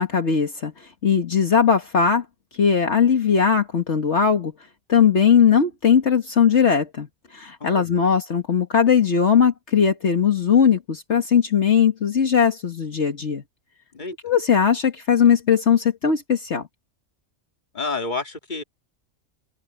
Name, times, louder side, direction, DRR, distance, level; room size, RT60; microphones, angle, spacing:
voice 1, 0.0-2.2 2.5-4.5 4.9-7.1 7.3-13.4 14.2-16.7, left 7 dB, 60° left, 1.9 m, -19 dB
voice 2, 7.6-8.1 13.9-14.1 17.7-18.6, left 3 dB, 40° left, 2.5 m, -30 dB
open air
omnidirectional pair, 1.3 m